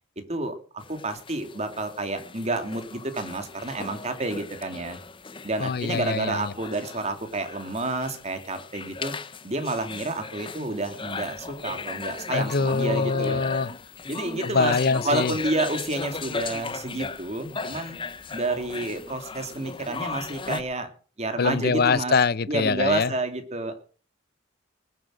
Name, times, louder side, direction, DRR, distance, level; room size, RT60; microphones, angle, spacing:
sound 1, 0.8-20.6, left 4 dB, 25° left, 0.8 m, -37 dB
voice 1, 0.9-5.0 5.4-9.1 9.4-13.4 14.1-14.7 15.0-18.0 18.3-20.9 21.2-22.1 22.5-23.8, right 2 dB, 35° right, 2.6 m, -29 dB
voice 2, 5.6-6.5 12.3-13.7 14.5-15.3 21.4-23.1, left 4 dB, 50° left, 0.6 m, -24 dB
20.0 x 7.8 x 6.3 m
head